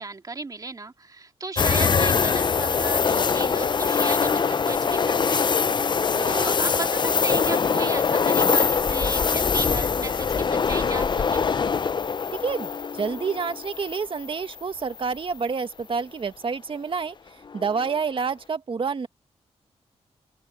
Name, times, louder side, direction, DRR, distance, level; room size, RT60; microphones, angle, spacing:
voice 1, 0.0-5.5 5.7-11.4, right 3 dB, 35° right, 2.5 m, -35 dB
sound 1, 1.6-14.6 15.0-15.1 17.5-17.9, left 5 dB, 40° left, 0.6 m, -23 dB
voice 2, 12.4-19.1, right 5 dB, 50° right, 1.8 m, -28 dB
open air
cardioid pair, 85°, 11 cm